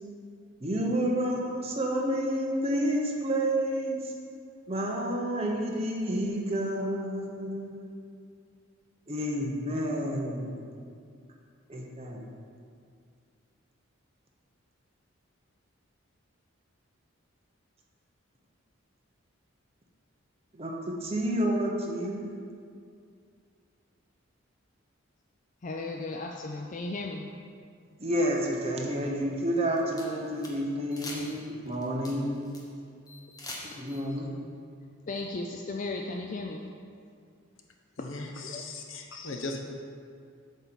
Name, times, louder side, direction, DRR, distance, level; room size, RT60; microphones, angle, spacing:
voice 1, 0.6-4.1 4.7-7.9 9.1-10.6 11.7-12.3 20.5-20.7 21.0-22.3 28.0-32.5 33.6-34.3, right 1 dB, 30° right, 0.9 m, -30 dB
voice 2, 25.6-27.3 35.1-36.6 38.0-38.1 38.4-38.6, left 2 dB, 35° left, 0.4 m, -35 dB
sound 1, 29.5-30.5 30.9-31.4 31.7-32.6 33.1-34.0, left 2 dB, 15° left, 1.0 m, -42 dB
voice 3, 38.0-39.6, left 2 dB, 70° left, 0.9 m, -38 dB
8.0 x 4.4 x 7.0 m
head